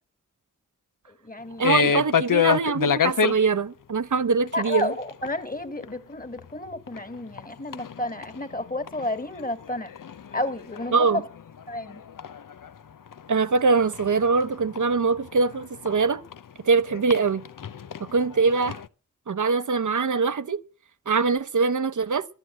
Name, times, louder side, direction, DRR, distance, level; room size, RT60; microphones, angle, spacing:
voice 1, 1.1-2.0 4.5-9.9 10.3-11.2 11.7-12.0, left 1 dB, 25° left, 2.0 m, -31 dB
sound 1, 1.6-3.3 4.5-4.8 5.1-5.3 5.8-5.9 6.4-6.5 6.7-7.5 7.7-9.1 9.3-12.7 13.1-16.4 16.9-18.9, left 7 dB, 85° left, 0.7 m, -27 dB
voice 2, 1.6-4.9 10.9-11.2 13.3-16.2 16.6-17.4 18.1-18.8 19.3-20.6 21.1-22.3, right 4 dB, 70° right, 0.8 m, -23 dB
12.5 x 9.7 x 7.4 m
wide cardioid pair, 50°, 32 cm